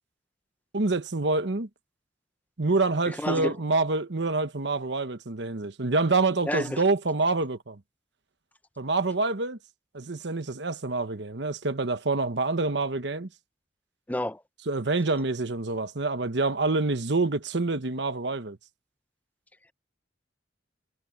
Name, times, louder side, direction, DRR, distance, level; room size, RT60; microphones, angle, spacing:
voice 1, 0.7-1.7 2.6-7.8 8.8-9.6 9.9-13.3 14.7-18.6, right 3 dB, 65° right, 1.1 m, -27 dB
voice 2, 3.0-3.6 6.5-6.8 14.1-14.4, left 1 dB, 10° left, 0.8 m, -30 dB
head